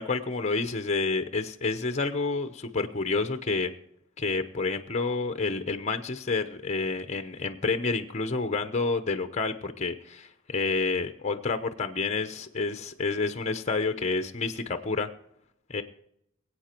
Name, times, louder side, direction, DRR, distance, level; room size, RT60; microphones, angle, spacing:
voice 1, 0.0-3.7 4.2-15.1 15.7-15.8, left 3 dB, 35° left, 9 dB, 0.9 m, -29 dB
22.5 x 8.4 x 4.5 m, 0.76 s
head